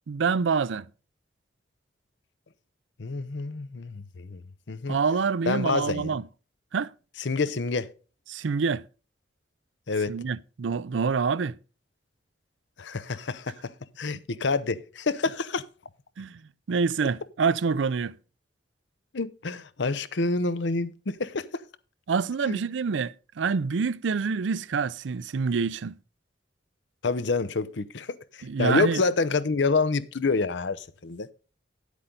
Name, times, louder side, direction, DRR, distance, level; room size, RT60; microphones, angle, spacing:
voice 1, 0.1-0.9 4.9-6.2 6.7-6.9 8.3-8.8 10.1-11.6 16.2-16.4 16.7-18.2 22.1-25.9 28.4-29.0, right 5 dB, 85° right, 0.5 m, -26 dB
voice 2, 3.0-4.4 4.7-5.0 5.5-6.2 7.2-7.9 9.9-10.2 12.8-15.6 19.1-21.6 22.4-22.6 27.0-31.3, left 3 dB, 75° left, 0.7 m, -28 dB
10.0 x 8.3 x 3.8 m
head